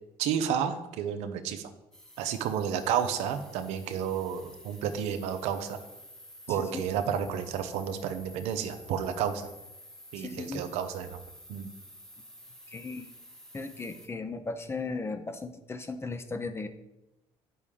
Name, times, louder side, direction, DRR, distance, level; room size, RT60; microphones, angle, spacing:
voice 1, 0.2-1.7 2.2-5.8 6.5-9.5 10.1-11.2 11.5-11.7, right 8 dB, 85° right, 9 dB, 0.7 m, -31 dB
sound 1, 1.9-14.1, equal, 5° left, 1.3 m, -51 dB
voice 2, 10.2-10.6 12.7-13.1 13.5-16.7, left 3 dB, 25° left, 8 dB, 0.8 m, -36 dB
8.2 x 5.5 x 3.7 m, 0.95 s
supercardioid pair, 85°, 11 cm